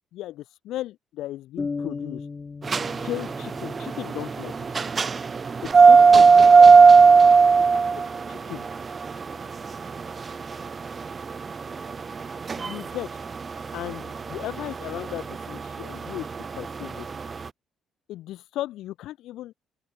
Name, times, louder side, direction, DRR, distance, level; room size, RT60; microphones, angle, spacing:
voice 1, 0.1-2.3 3.0-4.5 5.6-6.7 7.7-8.7 12.6-13.2 13.7-17.1 18.1-19.5, left 14 dB, 80° left, 2.7 m, -36 dB
sound 1, 1.6-5.3, left 4 dB, 25° left, 2.7 m, -37 dB
sound 2, 2.6-17.4, right 5 dB, 30° right, 0.9 m, -17 dB
voice 2, 6.0-7.8 10.5-10.7 13.5-13.7, left 9 dB, 55° left, 4.7 m, -51 dB
open air
cardioid pair, 125°, 0 cm